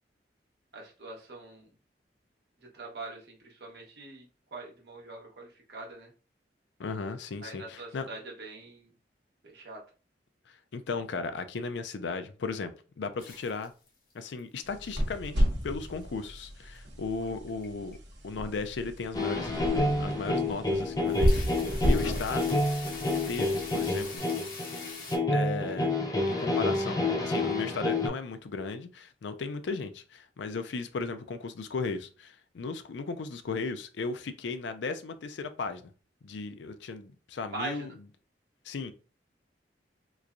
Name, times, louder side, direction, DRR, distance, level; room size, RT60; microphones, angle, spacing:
voice 1, 0.7-1.7 2.7-6.1 7.4-8.9 9.4-9.8 37.5-38.0, right 3 dB, 65° right, 1.2 m, -43 dB
voice 2, 6.8-8.1 10.5-13.7 14.1-18.0 18.2-22.6 23.3-24.2 25.3-25.9 26.3-35.9 36.2-37.9 38.6-38.9, left 4 dB, 80° left, 0.4 m, -36 dB
sound 1, 13.2-14.1 14.4-14.8 15.3-15.9 16.3-16.4 17.2-17.7 17.9-18.1 18.6-18.7 19.2-19.3 19.7-19.8 20.3-20.6 20.9-25.2, left 4 dB, 50° left, 1.1 m, -43 dB
sound 2, 14.6-24.0, equal, 90° right, 1.0 m, -32 dB
sound 3, 19.1-28.1, left 2 dB, 20° left, 0.5 m, -29 dB
3.4 x 3.0 x 2.5 m
head